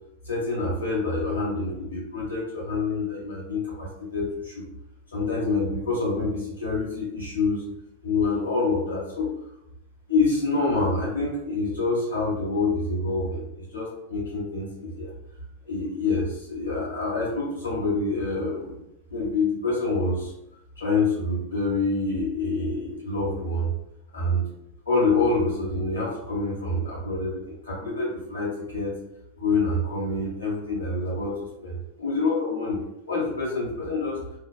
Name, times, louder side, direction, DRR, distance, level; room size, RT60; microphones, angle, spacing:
voice 1, 0.2-4.6 5.1-7.6 8.0-9.3 10.1-15.1 15.6-18.8 19.1-20.3 20.8-23.7 24.1-24.4 24.8-28.9 29.4-34.2, left 3 dB, 80° left, -5 dB, 1.5 m, -27 dB
2.9 x 2.2 x 2.4 m, 0.83 s
figure-of-eight pair, 90°, 0 cm